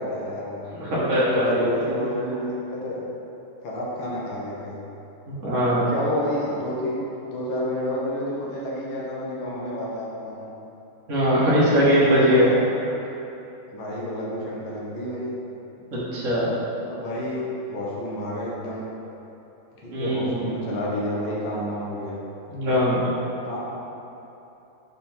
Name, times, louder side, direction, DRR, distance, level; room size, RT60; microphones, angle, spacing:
voice 1, 0.0-0.6 1.0-3.0 3.6-4.7 5.7-10.4 11.9-12.6 13.7-15.3 16.9-18.9 19.8-22.2 23.4-23.6, left 1 dB, 70° left, -5 dB, 1.8 m, -30 dB
voice 2, 0.8-1.7 5.3-5.9 11.1-12.5 15.9-16.5 19.9-20.4 22.5-23.0, equal, 40° right, -9 dB, 1.5 m, -21 dB
5.4 x 4.2 x 4.3 m, 2.9 s
omnidirectional pair, 2.3 m